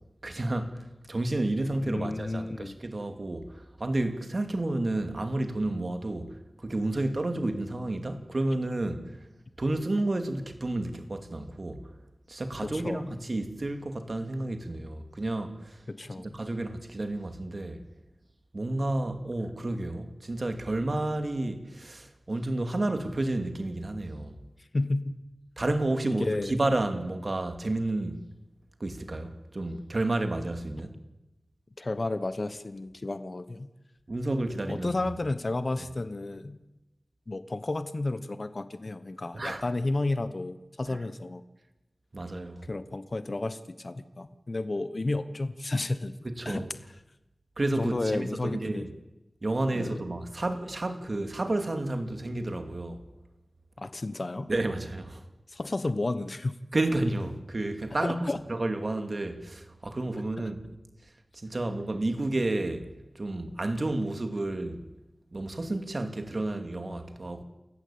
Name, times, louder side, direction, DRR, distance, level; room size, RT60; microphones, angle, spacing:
voice 1, 0.2-6.3 6.6-9.2 9.6-11.9 12.3-15.8 16.2-17.8 18.5-24.4 25.6-28.2 28.8-31.0 34.1-34.9 35.8-35.9 39.3-39.6 40.9-41.0 42.1-42.6 46.2-46.7 47.6-48.9 49.4-53.0 54.5-55.2 56.7-60.6 61.3-62.9 63.1-64.9 65.3-67.4, right 2 dB, 45° right, 2.6 m, -31 dB
voice 2, 1.8-2.7 12.7-13.2 15.9-16.3 24.7-25.2 26.2-26.6 31.8-33.7 34.7-36.6 37.3-41.4 42.6-46.1 46.4-46.7 47.8-48.8 49.7-49.9 53.8-54.5 55.5-56.6 58.0-58.4, left 2 dB, 45° left, 1.2 m, -32 dB
28.5 x 15.0 x 8.7 m
wide cardioid pair, 85°, 0 cm